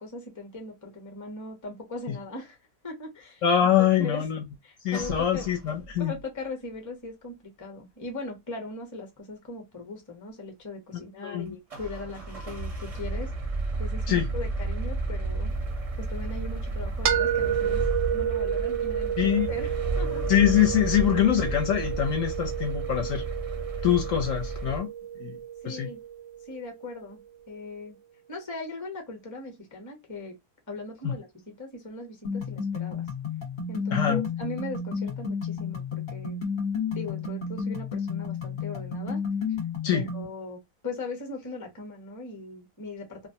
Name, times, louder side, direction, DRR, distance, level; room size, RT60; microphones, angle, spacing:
voice 1, 0.0-2.6 2.8-4.3 4.6-5.5 6.0-13.3 13.8-17.8 18.1-20.3 25.6-26.0 26.4-27.2 27.5-28.0 28.3-30.3 30.7-31.3 31.6-33.1 33.7-36.4 36.9-39.2 39.9-43.3, left 2 dB, 15° left, 0.7 m, -39 dB
voice 2, 3.4-4.4 4.8-6.1 10.9-11.5 14.1-14.3 19.2-19.5 20.3-23.2 23.8-24.9 25.2-25.3 25.6-25.9 31.0-31.1 33.9-34.2 39.8-40.0, left 10 dB, 65° left, 0.9 m, -24 dB
sound 1, 4.9-6.2 11.7-24.8, right 2 dB, 40° right, 0.5 m, -33 dB
sound 2, 17.0-26.9, right 9 dB, 70° right, 0.8 m, -31 dB
sound 3, 32.2-40.2, left 5 dB, 35° left, 1.1 m, -31 dB
2.5 x 2.1 x 2.7 m
omnidirectional pair, 1.6 m